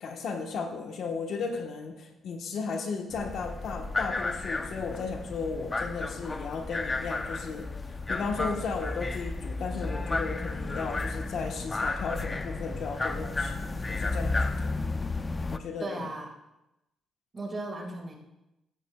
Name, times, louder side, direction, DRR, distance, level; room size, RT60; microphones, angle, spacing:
voice 1, 0.0-7.7 8.1-14.8 15.5-16.1, left 5 dB, 65° left, 3 dB, 1.2 m, -35 dB
sound 1, 3.1-15.6, left 3 dB, 25° left, 0.5 m, -33 dB
voice 2, 14.8-15.2 15.8-16.4 17.3-18.2, right 2 dB, 35° right, 2 dB, 1.9 m, -37 dB
12.5 x 8.7 x 2.3 m, 0.94 s
cardioid pair, 90°, 0 cm